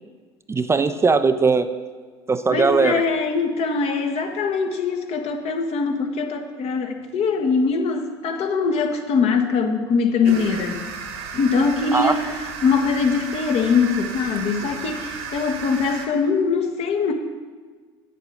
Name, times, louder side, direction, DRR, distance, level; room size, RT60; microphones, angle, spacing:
voice 1, 0.5-1.7 2.3-3.0 11.9-12.1, right 4 dB, 20° right, 10 dB, 0.5 m, -19 dB
voice 2, 2.5-10.9 11.3-12.2 12.6-17.1, left 5 dB, 50° left, 5 dB, 1.3 m, -22 dB
sound 1, 10.2-16.1, right 5 dB, 75° right, 1.5 m, -33 dB
9.5 x 7.6 x 5.2 m, 1.5 s
hypercardioid pair, 65°, 13 cm